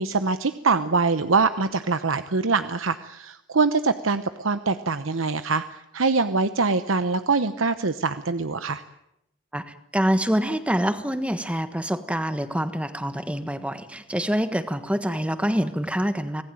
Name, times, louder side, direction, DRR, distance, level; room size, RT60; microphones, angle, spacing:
voice 1, 0.0-8.8, right 4 dB, 85° right, 11 dB, 1.0 m, -24 dB
voice 2, 9.5-16.4, equal, 5° right, 10 dB, 1.4 m, -26 dB
25.5 x 18.5 x 9.1 m, 0.84 s
head